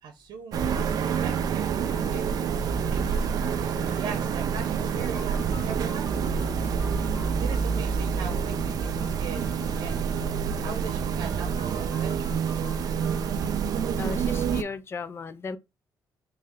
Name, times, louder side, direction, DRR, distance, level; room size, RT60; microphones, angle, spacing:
voice 1, 0.0-2.6 2.8-3.0 4.0-6.3 7.4-10.0 10.4-12.6, right 6 dB, 85° right, 0.8 m, -41 dB
sound 1, 0.5-14.6, right 6 dB, 55° right, 0.4 m, -27 dB
sound 2, 0.8-14.8, left 5 dB, 65° left, 0.9 m, -49 dB
sound 3, 1.1-6.7, right 2 dB, 15° right, 0.7 m, -49 dB
voice 2, 14.0-15.6, left 4 dB, 35° left, 0.4 m, -35 dB
3.3 x 3.2 x 3.7 m
cardioid pair, 155°, 8 cm